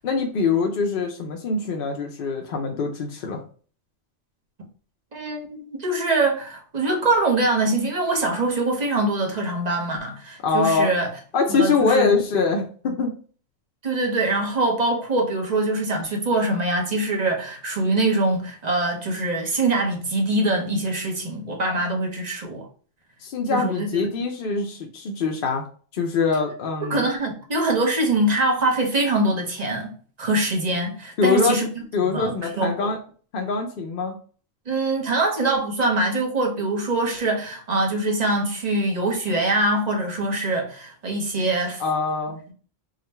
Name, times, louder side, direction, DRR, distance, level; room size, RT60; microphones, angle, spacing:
voice 1, 0.0-3.4 10.4-10.9 11.3-13.1 23.2-25.6 25.9-27.0 31.2-31.6 31.9-33.0 33.3-34.2 41.8-42.4, left 4 dB, 60° left, 0.6 m, -23 dB
voice 2, 5.1-11.1 11.5-12.2 13.8-22.7 23.5-24.1 26.9-29.9 30.2-31.7 32.1-32.9 34.7-41.8, right 2 dB, 40° right, 0.8 m, -23 dB
3.7 x 2.2 x 4.2 m
omnidirectional pair, 1.3 m